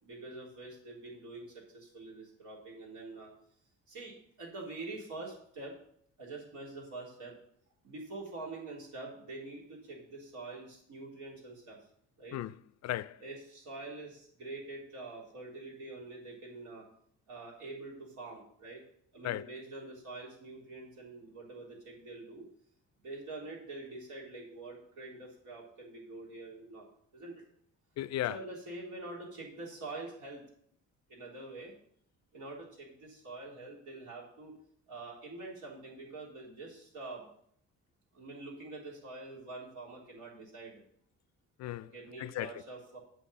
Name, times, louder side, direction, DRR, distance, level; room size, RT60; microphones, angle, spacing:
voice 1, 0.0-3.3 3.9-5.8 6.2-7.4 7.8-11.8 12.2-12.4 13.2-16.9 17.3-18.8 19.1-22.5 23.0-26.9 27.1-27.4 28.3-30.4 31.1-31.7 32.3-34.5 34.9-37.3 38.1-40.8 41.9-43.0, right 2 dB, 80° right, 3.8 m, -45 dB
voice 2, 12.8-13.2 19.2-19.4 28.0-28.4 41.6-41.9 42.2-42.6, left 14 dB, 60° left, 0.4 m, -35 dB
8.5 x 5.5 x 6.9 m
cardioid pair, 90°, 30 cm